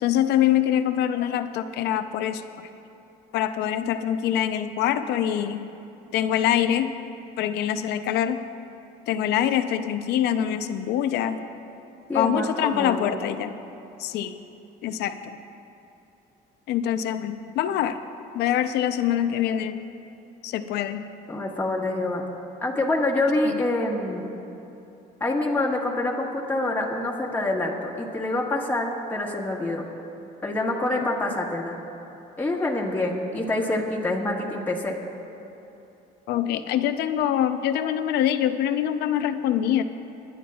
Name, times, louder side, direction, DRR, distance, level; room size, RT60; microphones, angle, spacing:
voice 1, 0.0-2.4 3.3-5.7 6.1-6.9 7.4-8.4 9.1-11.4 12.1-13.5 14.0-14.3 14.8-15.4 16.7-18.0 18.3-19.8 20.4-21.0 23.4-23.6 36.3-39.8, left 10 dB, 80° left, 10 dB, 0.6 m, -24 dB
voice 2, 12.1-13.1 21.3-22.2 22.6-24.3 25.2-29.8 30.4-31.8 32.4-35.0, left 2 dB, 10° left, -3 dB, 1.5 m, -26 dB
26.0 x 11.0 x 2.4 m, 2.9 s
cardioid pair, 110°, 17 cm